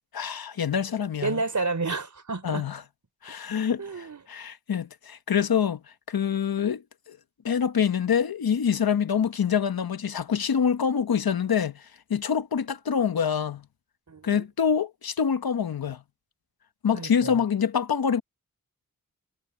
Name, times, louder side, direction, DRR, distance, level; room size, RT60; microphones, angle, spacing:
voice 1, 0.1-1.4 2.4-2.8 3.2-5.8 6.1-6.8 7.1-7.2 7.4-11.8 12.1-13.6 14.2-16.0 16.8-18.2, left 7 dB, 90° left, 1.2 m, -26 dB
voice 2, 1.2-2.7 3.8-4.2 14.1-14.4 16.9-17.4, right 3 dB, 55° right, 3.8 m, -30 dB
wide cardioid pair, 105°, 35 cm